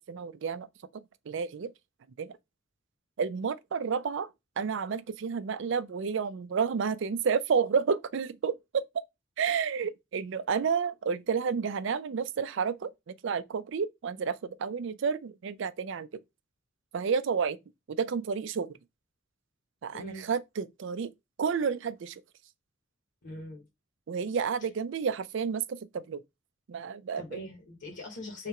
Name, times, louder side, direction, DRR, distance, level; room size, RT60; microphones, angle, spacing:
voice 1, 0.1-0.7 1.3-1.7 2.2-2.3 3.2-8.8 9.4-16.2 16.9-17.6 17.9-18.8 19.8-21.1 21.4-22.2 24.1-26.2 26.7-27.4, right 6 dB, 70° right, 0.4 m, -30 dB
voice 2, 19.9-20.3 23.2-23.6 27.2-28.5, left 2 dB, 65° left, 1.2 m, -41 dB
3.3 x 2.9 x 4.7 m
head